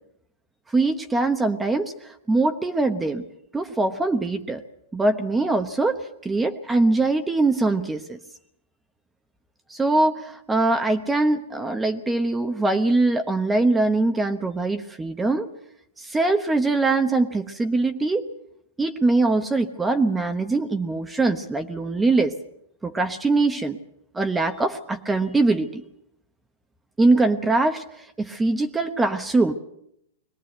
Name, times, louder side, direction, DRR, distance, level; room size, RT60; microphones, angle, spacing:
voice 1, 0.7-3.3 3.5-4.6 4.9-8.2 9.7-15.5 16.0-18.3 18.8-22.3 22.8-23.8 24.1-25.8 27.0-29.5, right 2 dB, 10° right, 7 dB, 1.0 m, -22 dB
22.5 x 18.5 x 8.0 m, 0.75 s
hypercardioid pair, 145°, 0 cm